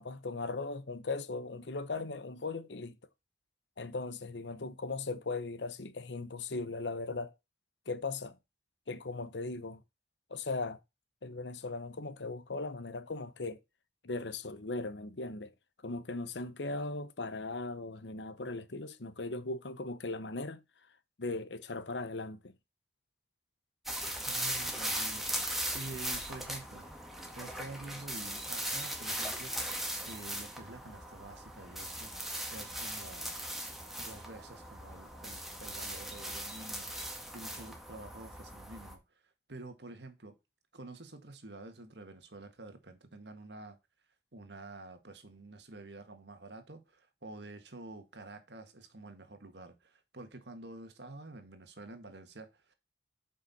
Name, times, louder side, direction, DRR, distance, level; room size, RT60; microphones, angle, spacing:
voice 1, 0.0-3.0 3.8-7.3 7.9-8.4 8.9-9.8 10.3-10.8 11.2-13.6 14.0-15.5 15.8-20.6 21.2-22.6, left 3 dB, 80° left, 0.9 m, -38 dB
sound 1, 23.9-38.9, right 1 dB, ahead, 1.8 m, -39 dB
voice 2, 24.3-26.9 27.4-29.5 30.1-33.4 34.0-39.0 39.5-40.4 40.7-43.8 44.3-52.7, right 2 dB, 70° right, 1.6 m, -48 dB
8.0 x 5.6 x 4.1 m
head